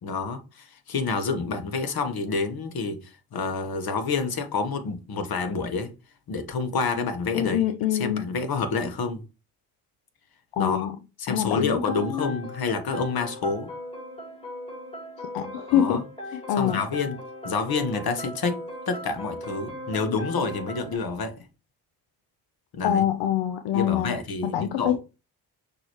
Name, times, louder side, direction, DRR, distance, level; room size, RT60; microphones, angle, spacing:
voice 1, 0.0-5.9 6.3-7.6 7.9-9.2 10.6-10.9 11.2-13.7 15.7-16.0 16.6-17.2 17.4-21.3 22.7-23.0 23.7-25.0, left 4 dB, 55° left, 1.2 m, -28 dB
voice 2, 7.3-8.2 10.6-11.0 11.3-12.3 15.3-16.0 16.5-16.8 22.8-24.2 24.4-25.0, left 10 dB, 75° left, 0.6 m, -25 dB
sound 1, 12.0-21.0, equal, 15° left, 3.0 m, -38 dB
6.0 x 2.8 x 3.1 m
supercardioid pair, 55°, 45 cm